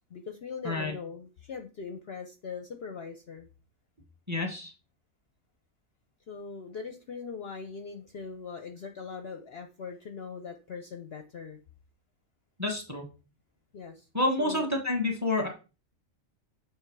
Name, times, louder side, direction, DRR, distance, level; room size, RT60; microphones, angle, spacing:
voice 1, 0.1-3.5 6.3-11.6 13.7-14.1 14.4-14.7, left 5 dB, 55° left, 7 dB, 0.8 m, -41 dB
voice 2, 4.3-4.7 12.6-13.0 14.1-15.5, left 2 dB, 15° right, 2 dB, 1.1 m, -28 dB
6.9 x 3.5 x 4.6 m, 0.32 s
omnidirectional pair, 1.5 m